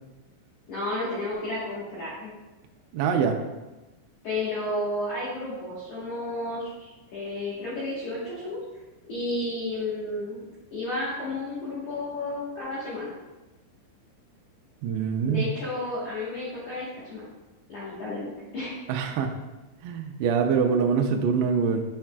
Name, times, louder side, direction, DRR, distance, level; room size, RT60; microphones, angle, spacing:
voice 1, 0.7-2.3 4.2-8.6 9.0-10.4 10.7-13.1 15.3-17.2 17.7-18.7, left 2 dB, 80° left, -9 dB, 1.7 m, -32 dB
voice 2, 2.9-3.4 14.8-15.5 18.9-19.3 19.8-21.8, right 6 dB, 85° right, 3 dB, 2.4 m, -24 dB
7.2 x 5.9 x 2.2 m, 1.1 s
omnidirectional pair, 5.4 m